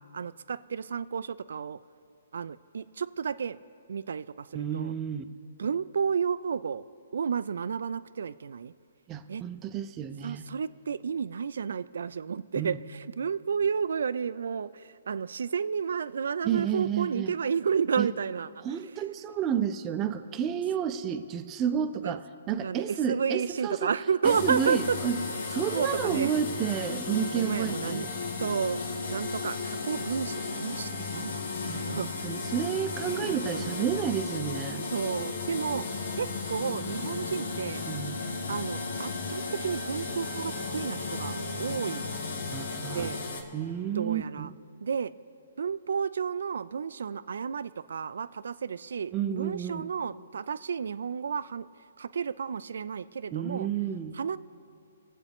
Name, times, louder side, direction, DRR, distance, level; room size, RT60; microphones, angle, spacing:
voice 1, 0.1-1.8 2.3-3.6 3.9-4.9 5.6-6.9 7.1-8.7 9.3-9.4 10.2-18.6 22.0-22.2 22.6-25.0 25.7-26.4 27.4-28.1 28.4-28.8 29.1-31.4 31.7-32.1 33.1-33.8 34.9-35.9 36.2-37.8 38.5-42.1 42.9-43.2 43.9-44.5 44.8-45.1 45.6-51.7 52.0-53.7 54.1-54.4, right 6 dB, 75° right, 16 dB, 0.4 m, -31 dB
voice 2, 4.5-5.3 9.1-10.5 12.6-12.8 16.4-17.3 18.0-18.1 18.6-22.2 22.5-23.9 24.2-25.2 25.5-28.1 31.6-34.9 37.9-38.3 42.5-43.1 43.5-44.5 49.1-49.9 53.3-54.2, right 9 dB, 20° right, 9 dB, 0.6 m, -31 dB
sound 1, 24.2-43.4, left 4 dB, 80° left, 1.6 m, -34 dB
24.0 x 8.2 x 3.5 m, 2.5 s
hypercardioid pair, 155°, 0 cm